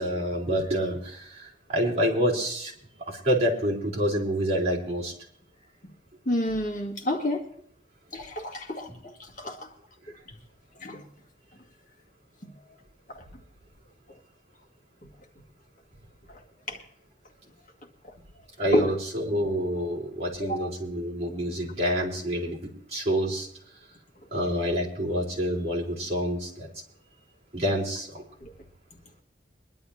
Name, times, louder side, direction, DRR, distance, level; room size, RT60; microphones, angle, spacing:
voice 1, 0.0-2.7 3.0-5.1 8.9-9.0 18.6-23.5 24.3-26.7 27.5-28.2, equal, 35° right, 4.3 m, -27 dB
voice 2, 6.3-7.4 8.1-8.9 9.4-9.7 10.8-11.0 16.7-16.8 18.7-18.9 20.4-20.7, left 1 dB, 45° left, 2.1 m, -28 dB
23.5 x 11.5 x 2.9 m
head